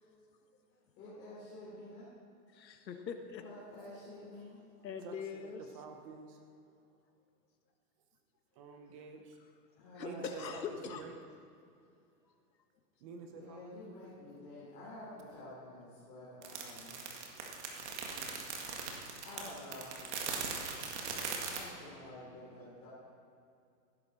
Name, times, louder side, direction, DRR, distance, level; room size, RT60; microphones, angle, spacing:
voice 1, 1.0-2.1 3.4-4.6 9.8-10.5 13.3-17.0 19.2-20.2 21.3-22.9, left 1 dB, 20° left, -9 dB, 3.7 m, -49 dB
voice 2, 2.5-3.4 4.8-5.7 9.5-9.6 9.9-11.1, left 6 dB, 85° left, 5 dB, 1.8 m, -43 dB
voice 3, 5.0-5.5 5.7-6.4 8.6-9.4 10.0-11.1 13.0-13.8, right 5 dB, 20° right, 4 dB, 0.9 m, -49 dB
sound 1, 16.4-21.6, right 5 dB, 45° right, 2.0 m, -40 dB
16.5 x 11.5 x 4.3 m, 2.4 s
hypercardioid pair, 165°, 49 cm